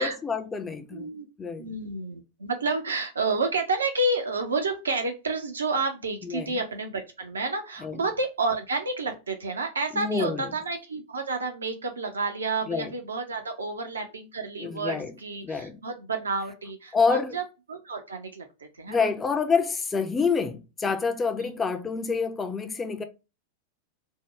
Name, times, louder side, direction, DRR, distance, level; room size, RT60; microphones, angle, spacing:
voice 1, 0.0-1.1 1.4-1.8 6.2-6.6 7.8-8.0 9.9-10.5 12.6-12.9 14.6-15.2 15.4-15.8 16.9-17.4 18.9-23.0, left 5 dB, 15° left, 0.4 m, -27 dB
voice 2, 0.9-1.3 1.6-17.4 17.7-18.5 18.8-19.0, right 3 dB, 75° right, 0.5 m, -30 dB
3.5 x 2.0 x 3.2 m
figure-of-eight pair, 90°, 0 cm